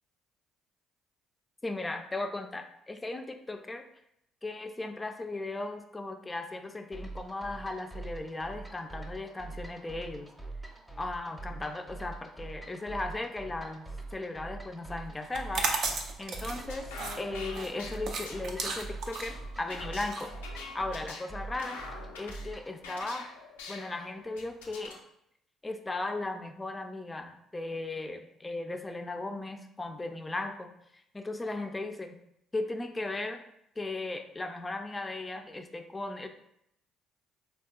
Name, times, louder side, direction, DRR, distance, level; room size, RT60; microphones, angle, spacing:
voice 1, 1.6-3.8 4.4-10.3 11.0-13.9 14.1-15.9 16.2-16.9 17.2-20.3 20.7-21.8 22.2-23.3 23.7-25.0 25.6-30.7 31.1-32.2 32.5-33.4 33.8-36.3, left 2 dB, 20° left, 6 dB, 0.4 m, -37 dB
sound 1, 6.9-22.8, right 3 dB, 5° right, 0.7 m, -44 dB
sound 2, 15.2-21.0, right 4 dB, 65° right, 0.4 m, -35 dB
sound 3, 16.5-25.0, left 4 dB, 90° left, 0.4 m, -45 dB
3.5 x 2.3 x 2.3 m, 0.77 s
hypercardioid pair, 55°, 0 cm